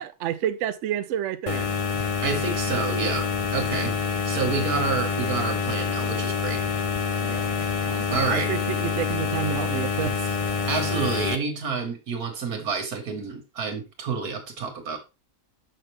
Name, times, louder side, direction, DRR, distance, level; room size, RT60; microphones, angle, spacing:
voice 1, 0.0-1.7 7.2-7.6 7.9-10.4, right 11 dB, 65° right, 0.8 m, -30 dB
sound 1, 1.5-11.4, left 6 dB, 60° left, 0.3 m, -27 dB
voice 2, 2.2-3.9 4.3-6.6 8.1-8.5 10.7-15.0, right 5 dB, 85° right, 2.0 m, -29 dB
6.7 x 5.9 x 3.2 m
omnidirectional pair, 1.6 m